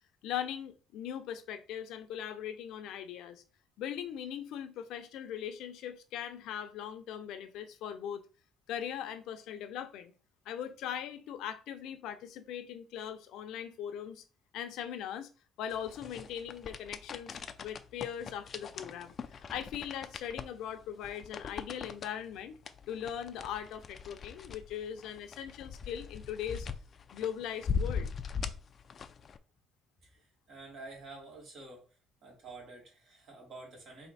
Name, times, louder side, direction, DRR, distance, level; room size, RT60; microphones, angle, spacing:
voice 1, 0.2-3.4 3.8-8.2 8.7-10.1 10.5-14.2 14.5-15.3 15.6-22.5 22.9-26.7 27.1-28.1, left 9 dB, 85° left, 0.6 m, -40 dB
sound 1, 15.7-29.4, left 6 dB, 40° left, 0.4 m, -41 dB
voice 2, 30.0-31.9 32.2-34.1, right 3 dB, 55° right, 2.2 m, -49 dB
4.3 x 2.7 x 4.0 m
cardioid pair, 135°, 0 cm